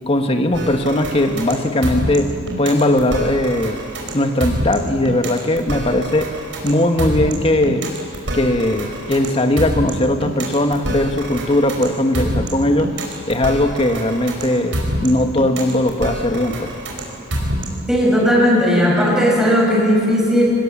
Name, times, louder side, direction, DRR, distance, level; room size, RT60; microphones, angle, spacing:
voice 1, 0.1-3.8 4.1-6.3 6.6-7.8 8.3-13.0 13.3-16.7, left 1 dB, 30° left, 6 dB, 1.4 m, -19 dB
sound 1, 0.5-17.9, right 1 dB, 85° right, 5.2 m, -26 dB
voice 2, 17.9-20.4, equal, 5° right, -4 dB, 6.9 m, -15 dB
25.5 x 20.0 x 7.3 m, 2.7 s
head